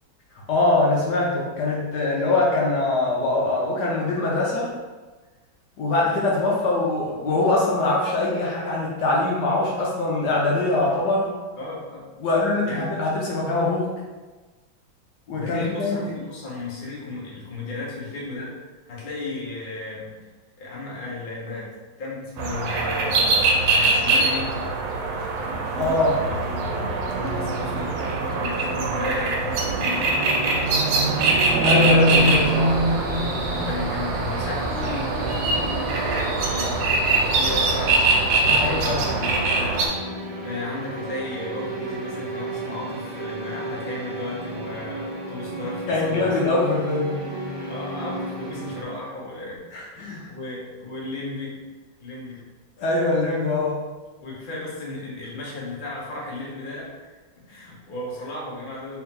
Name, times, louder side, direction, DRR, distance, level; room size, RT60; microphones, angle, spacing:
voice 1, 0.5-4.7 5.8-11.3 12.2-13.9 15.3-16.1 25.8-26.2 31.6-32.8 38.4-39.1 45.9-47.1 49.7-50.3 52.8-53.8, left 2 dB, 65° left, -4 dB, 1.1 m, -23 dB
voice 2, 11.6-12.0 12.7-12.9 15.3-18.6 18.9-20.1 20.6-21.7 22.0-23.4 23.7-24.6 26.2-26.6 27.1-28.0 28.3-30.2 33.5-39.8 40.1-46.3 47.7-49.6 49.9-51.6 52.0-52.4 54.2-57.2 57.5-59.0, left 2 dB, 50° left, -5 dB, 0.6 m, -35 dB
sound 1, 22.4-39.9, right 2 dB, 80° right, 1.5 m, -22 dB
sound 2, 29.6-48.8, right 2 dB, 65° right, 0.8 m, -34 dB
sound 3, 32.0-39.1, right 1 dB, 20° right, 0.4 m, -35 dB
3.4 x 2.9 x 3.6 m, 1.3 s
omnidirectional pair, 2.2 m